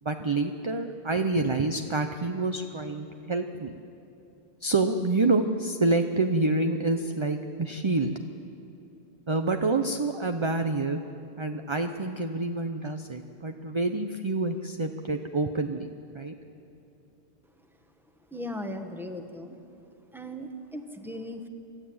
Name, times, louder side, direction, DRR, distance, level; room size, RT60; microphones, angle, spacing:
voice 1, 0.0-3.8 4.6-8.1 9.3-11.0 11.4-15.9 16.1-16.4, right 3 dB, 30° right, 6 dB, 0.7 m, -27 dB
voice 2, 18.3-19.6 20.1-21.5, left 1 dB, ahead, 5 dB, 1.3 m, -38 dB
29.0 x 13.5 x 8.7 m, 2.9 s
omnidirectional pair, 1.1 m